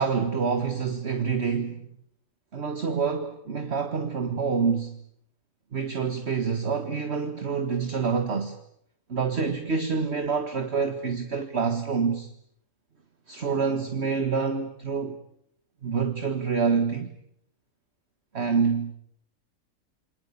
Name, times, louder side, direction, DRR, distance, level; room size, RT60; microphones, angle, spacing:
voice 1, 0.0-1.9 2.5-5.0 5.7-8.6 9.1-12.3 13.3-15.2 15.8-17.1 18.3-18.9, right 5 dB, 50° right, 1.9 m, -27 dB
28.5 x 25.0 x 8.3 m
omnidirectional pair, 1.5 m